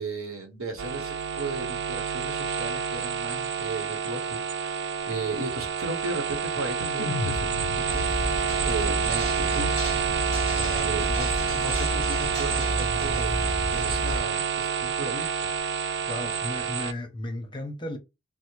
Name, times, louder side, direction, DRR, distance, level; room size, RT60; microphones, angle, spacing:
voice 1, 0.0-8.1 8.6-9.8 10.8-15.5, right 2 dB, 85° right, 1.0 m, -35 dB
sound 1, 0.8-16.9, right 7 dB, 55° right, 0.3 m, -28 dB
sound 2, 7.0-11.3, left 3 dB, 90° left, 0.5 m, -37 dB
sound 3, 7.9-14.2, equal, 25° right, 1.7 m, -31 dB
voice 2, 10.5-11.0 16.1-18.0, left 1 dB, 25° left, 0.6 m, -35 dB
3.3 x 2.0 x 3.1 m
head